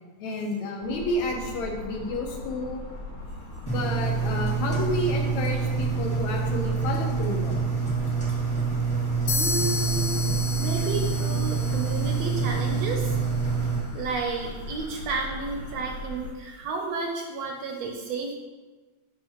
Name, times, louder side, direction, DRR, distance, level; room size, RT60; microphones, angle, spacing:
voice 1, 0.2-2.8 3.7-7.6 10.3-10.4, left 2 dB, 75° left, 1 dB, 2.2 m, -30 dB
sound 1, 0.8-16.3, left 1 dB, 50° left, 2.3 m, -39 dB
Engine, 3.7-13.8, right 5 dB, 5° left, 1.1 m, -26 dB
sound 2, 9.3-13.0, left 5 dB, 90° left, 2.3 m, -33 dB
voice 2, 9.3-13.2 13.9-18.3, right 3 dB, 75° right, 2 dB, 1.6 m, -32 dB
12.0 x 4.6 x 3.0 m, 1.3 s
omnidirectional pair, 3.4 m